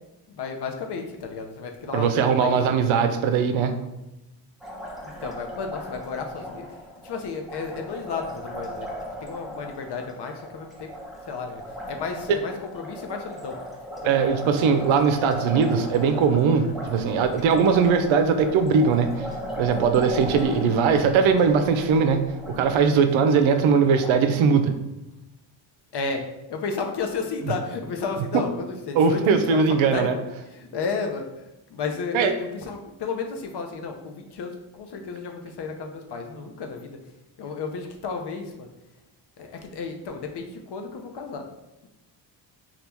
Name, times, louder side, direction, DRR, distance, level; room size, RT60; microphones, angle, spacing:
voice 1, 0.3-2.6 5.0-6.7 7.0-8.9 9.2-10.9 11.3-11.6 11.9-13.6 14.0-14.2 20.4-20.5 22.9-23.0 25.9-26.2 26.5-29.6 29.9-30.2 30.5-37.0 37.4-38.7 39.4-41.5, left 4 dB, 55° left, 4 dB, 0.7 m, -32 dB
voice 2, 1.9-3.8 12.3-12.4 14.0-19.3 19.6-24.7 28.3-28.4 29.0-30.2 32.1-32.3, right 5 dB, 70° right, 8 dB, 0.6 m, -20 dB
Liquid, 4.6-24.1, equal, ahead, 0.8 m, -37 dB
2.9 x 2.4 x 3.4 m, 0.96 s
supercardioid pair, 55°, 50 cm